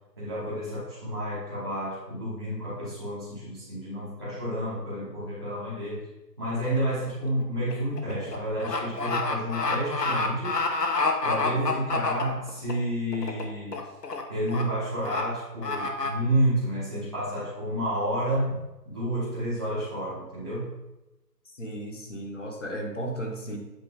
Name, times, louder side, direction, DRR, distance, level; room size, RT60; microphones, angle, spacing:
voice 1, 0.2-6.0 6.4-10.6 11.2-13.8 14.3-20.7, right 1 dB, 15° right, -14 dB, 1.2 m, -30 dB
sound 1, 6.6-6.9 7.2-12.7 13.1-13.4 13.7-14.2 14.5-14.6 15.0-15.2 15.6-16.1, left 3 dB, 70° left, 1.2 m, -28 dB
voice 2, 21.5-23.6, right 1 dB, 45° left, 1 dB, 1.3 m, -35 dB
8.5 x 4.3 x 3.7 m, 0.98 s
figure-of-eight pair, 165°, 50 cm